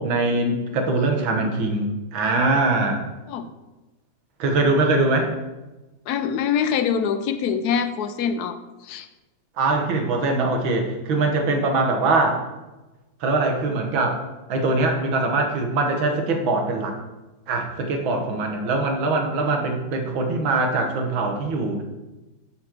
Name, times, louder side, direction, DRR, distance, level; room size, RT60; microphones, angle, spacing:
voice 1, 0.0-3.0 4.4-5.3 9.6-12.4 13.2-14.2 14.5-17.0 17.5-21.8, right 3 dB, 85° right, 3 dB, 2.0 m, -22 dB
voice 2, 1.1-1.5 3.3-3.5 6.1-8.6 8.8-9.1 18.2-18.5, left 7 dB, 65° left, 9 dB, 1.0 m, -25 dB
7.3 x 5.2 x 6.0 m, 1.1 s
omnidirectional pair, 2.1 m